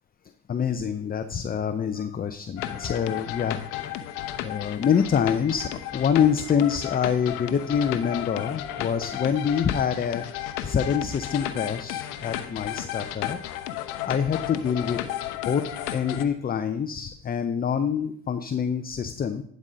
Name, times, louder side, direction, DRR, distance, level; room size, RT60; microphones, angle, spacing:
voice 1, 0.5-4.0 4.4-10.3 10.6-13.4 14.1-15.0 15.5-15.6 15.9-19.4, left 7 dB, 20° left, 8 dB, 0.5 m, -26 dB
sound 1, 2.6-16.3, left 12 dB, 90° left, 0.8 m, -33 dB
11.0 x 4.2 x 5.1 m, 0.64 s
supercardioid pair, 75°, 43 cm